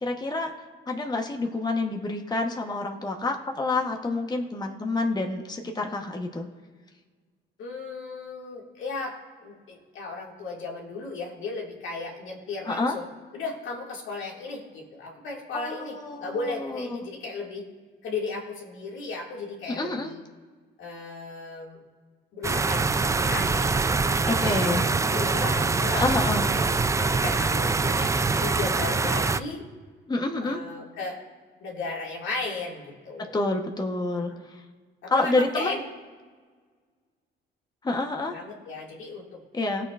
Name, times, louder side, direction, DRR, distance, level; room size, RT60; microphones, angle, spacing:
voice 1, 0.0-0.5 0.9-6.4 12.6-12.9 15.5-17.0 19.7-20.1 24.3-24.8 25.9-26.4 30.1-30.6 33.3-34.6 35.1-35.8 37.8-38.4 39.5-39.9, left 2 dB, 20° left, 2 dB, 1.0 m, -28 dB
voice 2, 7.6-13.1 13.3-17.7 18.0-20.2 20.8-21.8 22.3-26.0 26.4-26.6 27.0-29.7 30.4-31.2 31.6-33.4 34.3-34.4 35.0-35.8 38.3-39.4, left 3 dB, 75° left, -1 dB, 2.2 m, -35 dB
sound 1, 22.4-29.4, right 4 dB, 15° right, 0.3 m, -24 dB
19.0 x 6.7 x 2.5 m, 1.5 s
cardioid pair, 90°, 20 cm